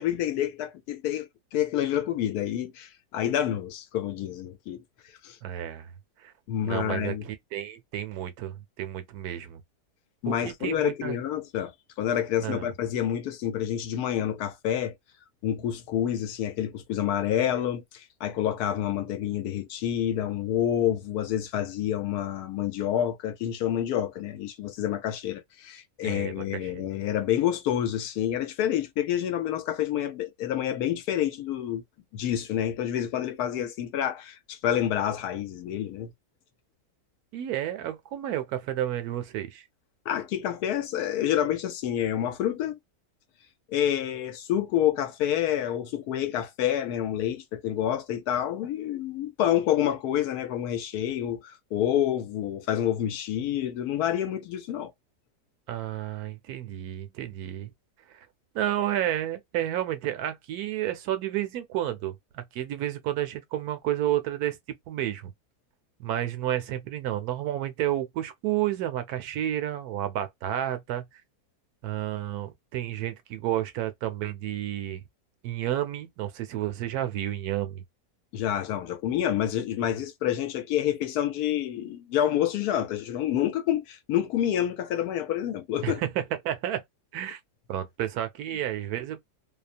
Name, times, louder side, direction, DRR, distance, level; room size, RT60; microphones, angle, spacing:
voice 1, 0.0-4.8 5.2-5.4 6.5-7.3 10.2-11.7 12.0-14.9 15.4-31.8 32.1-36.1 40.1-42.8 43.7-54.9 78.3-86.0, left 10 dB, 75° left, 1.1 m, -28 dB
voice 2, 5.4-5.9 6.2-6.3 6.6-9.6 10.3-11.2 12.4-12.7 26.0-26.9 37.3-39.6 55.7-57.7 58.1-58.3 58.5-64.6 64.9-65.3 66.0-71.2 71.8-75.0 75.4-77.8 85.8-86.8 87.1-87.4 87.7-89.2, right 12 dB, 75° right, 1.0 m, -31 dB
2.8 x 2.0 x 2.5 m
omnidirectional pair, 1.7 m